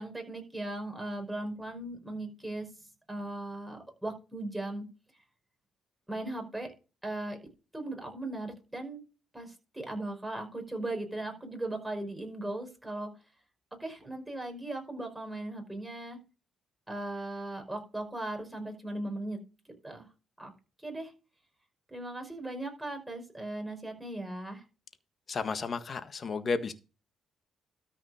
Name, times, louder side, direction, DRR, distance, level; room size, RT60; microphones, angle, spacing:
voice 1, 0.0-2.7 3.1-4.9 6.1-6.7 7.0-7.4 7.7-9.0 9.3-13.1 13.8-16.2 16.9-19.4 19.8-20.1 20.4-20.5 20.8-21.1 21.9-24.6, right 1 dB, 10° right, 5.2 m, -38 dB
voice 2, 25.3-26.7, left 4 dB, 45° left, 1.5 m, -32 dB
13.5 x 5.4 x 5.0 m
cardioid pair, 90°, 0 cm